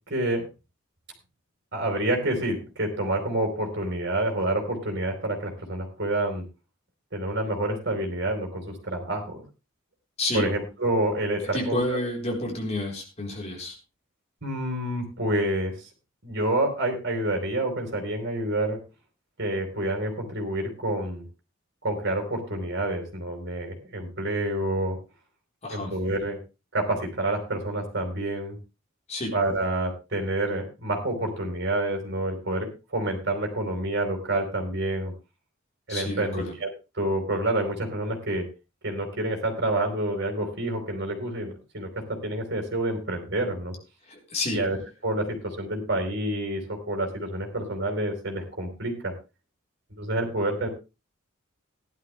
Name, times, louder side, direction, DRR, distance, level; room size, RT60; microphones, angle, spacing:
voice 1, 0.1-0.5 1.7-6.4 7.1-9.4 10.3-12.0 14.4-15.7 16.2-18.8 19.4-21.2 21.8-25.0 25.7-26.4 26.7-28.6 29.3-35.1 35.9-36.7 37.0-38.5 38.8-43.7 44.5-44.8 45.0-49.1 50.0-50.7, right 1 dB, 55° right, 3 dB, 4.5 m, -28 dB
voice 2, 11.5-13.7 25.6-25.9 29.1-29.3 35.9-36.5 44.1-44.6, left 1 dB, 35° left, 0 dB, 4.1 m, -30 dB
15.5 x 11.5 x 3.3 m, 0.29 s
head